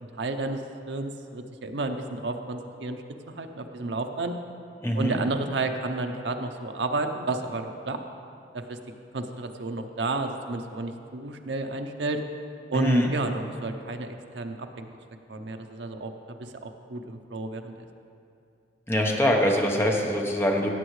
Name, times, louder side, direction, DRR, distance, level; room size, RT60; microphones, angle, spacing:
voice 1, 0.2-0.6 0.9-3.0 3.3-4.4 5.0-8.0 8.5-8.8 9.1-12.2 12.7-14.9 15.3-16.1 16.6-17.7, right 2 dB, 70° right, 5 dB, 0.7 m, -31 dB
voice 2, 4.8-5.2 12.7-13.1 18.9-20.7, equal, 15° left, 0 dB, 1.0 m, -24 dB
16.5 x 8.0 x 3.2 m, 2.5 s
head